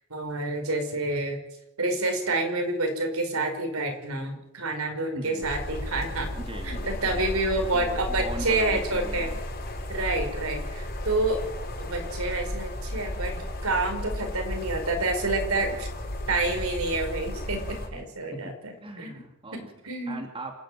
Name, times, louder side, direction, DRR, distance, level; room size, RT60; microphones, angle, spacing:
voice 1, 0.1-1.4 1.8-6.3 6.6-9.3 9.9-11.4 11.8-13.3 13.6-15.9 16.3-19.1 19.5-20.2, right 2 dB, 75° right, 4 dB, 5.2 m, -28 dB
voice 2, 5.1-5.5 6.3-7.2 7.7-9.4 15.7-15.8 18.8-19.7 20.1-20.5, right 1 dB, 25° right, 3 dB, 2.7 m, -39 dB
sound 1, 5.4-17.9, left 1 dB, 45° left, 5.3 m, -34 dB
28.0 x 10.0 x 9.2 m, 0.87 s
head